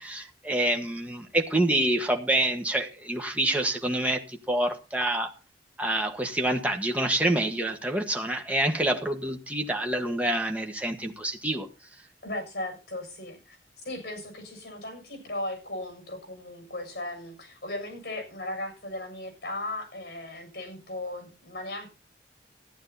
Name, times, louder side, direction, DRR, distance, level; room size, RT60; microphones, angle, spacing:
voice 1, 0.0-5.3 5.8-11.7, right 1 dB, 10° right, 1.5 m, -27 dB
voice 2, 12.2-13.6 13.8-21.9, left 1 dB, 60° left, 7.1 m, -37 dB
14.5 x 11.0 x 4.2 m
head